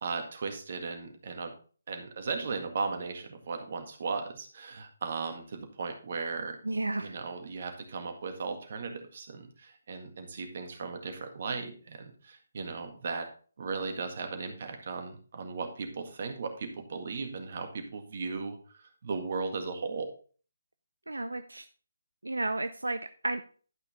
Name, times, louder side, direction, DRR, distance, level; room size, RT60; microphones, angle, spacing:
voice 1, 0.0-1.5 1.9-6.6 7.0-13.3 13.6-20.1, right 4 dB, 50° right, 5 dB, 1.9 m, -36 dB
voice 2, 6.6-7.2 21.1-21.6 22.2-23.0 23.2-23.4, right 2 dB, 85° right, 10 dB, 0.5 m, -32 dB
11.5 x 5.6 x 3.5 m, 0.40 s
figure-of-eight pair, 150°, 0 cm